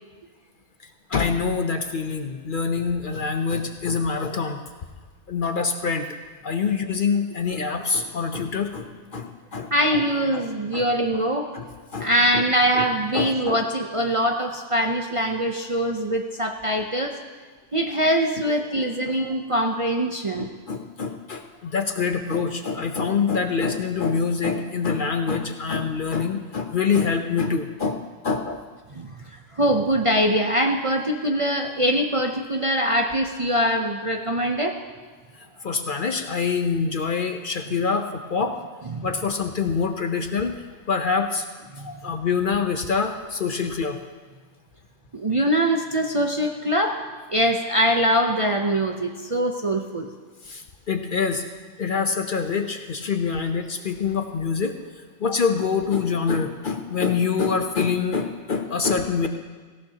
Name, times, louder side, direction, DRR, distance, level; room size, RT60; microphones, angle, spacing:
voice 1, 1.1-4.6 5.3-6.1 6.4-10.0 10.3-10.4 10.7-10.9 11.5-12.4 12.7-12.9 13.1-13.6 19.1-19.2 20.4-28.6 35.4-38.6 39.0-41.5 41.8-44.0 50.4-51.4 51.8-54.7 55.2-59.3, left 5 dB, 50° left, 6 dB, 0.8 m, -25 dB
voice 2, 9.7-11.5 12.0-17.2 17.7-20.5 28.9-29.1 29.5-34.8 38.9-39.1 41.8-42.0 45.1-47.0 47.3-50.1, equal, 35° right, 2 dB, 0.6 m, -23 dB
18.5 x 16.0 x 2.9 m, 1.4 s
omnidirectional pair, 1.3 m